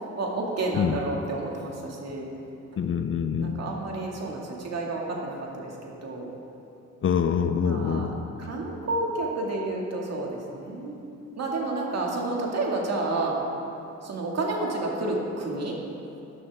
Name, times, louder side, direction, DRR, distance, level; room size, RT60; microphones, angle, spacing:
voice 1, 0.1-2.3 3.4-6.3 7.5-8.1 8.4-11.0 11.4-13.4 14.0-15.8, right 2 dB, 55° right, -1 dB, 2.3 m, -30 dB
voice 2, 2.8-3.6 7.0-8.1, left 7 dB, 45° left, 9 dB, 0.6 m, -25 dB
12.0 x 12.0 x 3.7 m, 2.7 s
cardioid pair, 90°, 30 cm